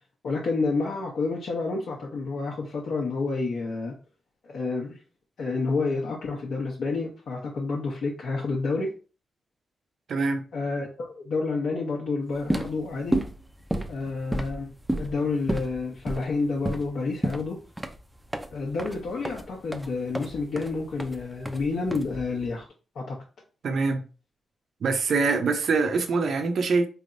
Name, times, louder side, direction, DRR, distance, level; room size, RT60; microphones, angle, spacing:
voice 1, 0.2-3.9 4.4-4.9 5.4-8.9 10.5-13.2 13.9-14.7 15.0-17.6 18.5-22.7 22.9-23.2, left 3 dB, 70° left, 0.9 m, -29 dB
voice 2, 10.1-10.4 23.6-24.0 24.8-26.9, right 4 dB, 65° right, 0.6 m, -24 dB
sound 1, 12.3-22.5, right 1 dB, 5° right, 0.4 m, -32 dB
4.2 x 3.4 x 2.6 m
wide cardioid pair, 135°, 0 cm